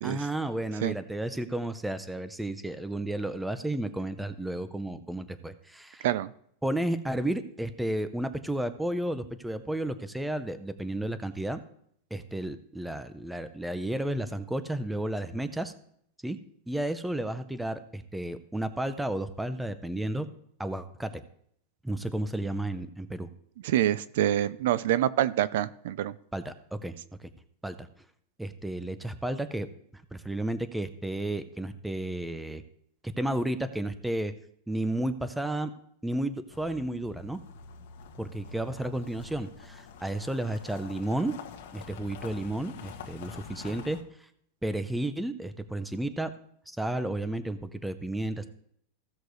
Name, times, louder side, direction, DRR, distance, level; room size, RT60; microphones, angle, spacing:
voice 1, 0.0-6.1 6.6-11.6 12.1-15.7 16.2-16.4 16.7-20.3 20.6-21.2 21.8-23.3 26.3-27.3 27.6-27.9 28.4-32.6 33.0-34.3 34.7-35.7 36.0-37.4 38.2-41.4 41.7-44.3 44.6-46.3 46.7-48.5, right 1 dB, 5° right, 0.5 m, -32 dB
voice 2, 23.6-26.1, right 12 dB, 65° right, 0.4 m, -26 dB
sound 1, 36.5-44.0, left 5 dB, 70° left, 1.4 m, -46 dB
15.5 x 6.5 x 3.1 m
supercardioid pair, 165°, 0 cm